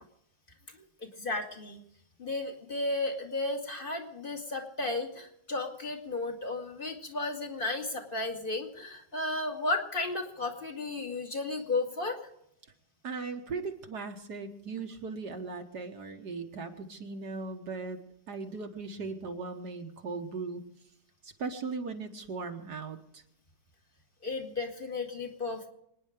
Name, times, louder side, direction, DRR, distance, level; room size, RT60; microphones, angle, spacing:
voice 1, 1.0-1.8 2.2-12.2 24.2-25.7, left 2 dB, 30° left, 4 dB, 2.2 m, -34 dB
voice 2, 13.0-18.0 18.3-20.6 21.2-23.0, right 4 dB, 65° right, 4 dB, 1.9 m, -38 dB
26.0 x 10.0 x 5.1 m, 0.75 s
omnidirectional pair, 2.0 m